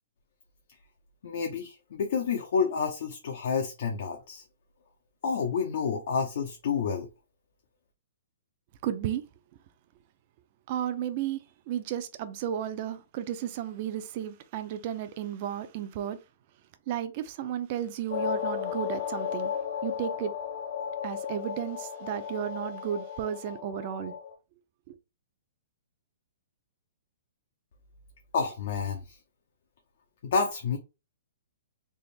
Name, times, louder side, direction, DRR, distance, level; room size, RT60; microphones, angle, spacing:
voice 1, 1.2-4.4 5.2-7.1 28.3-29.2 30.2-30.8, left 5 dB, 55° left, 0.6 m, -29 dB
voice 2, 8.8-9.2 10.7-16.2 16.9-19.5 19.8-20.3 21.0-24.1 24.9-25.0, right 10 dB, 35° right, 0.4 m, -33 dB
sound 1, 18.1-24.3, left 8 dB, 80° left, 1.5 m, -34 dB
3.4 x 2.0 x 4.0 m
hypercardioid pair, 165°, 0 cm